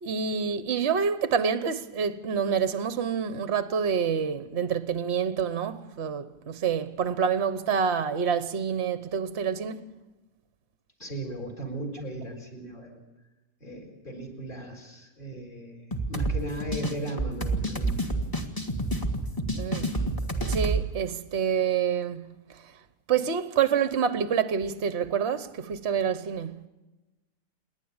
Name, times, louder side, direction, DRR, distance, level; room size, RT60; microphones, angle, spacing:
voice 1, 0.0-9.9 19.5-19.9 20.5-22.6 23.1-26.6, right 7 dB, 45° right, 1.1 m, -27 dB
voice 2, 11.0-13.0 13.6-18.0, right 1 dB, 30° left, 4.5 m, -37 dB
sound 1, 15.9-20.8, right 2 dB, 15° left, 1.7 m, -29 dB
29.0 x 11.0 x 8.8 m
omnidirectional pair, 1.8 m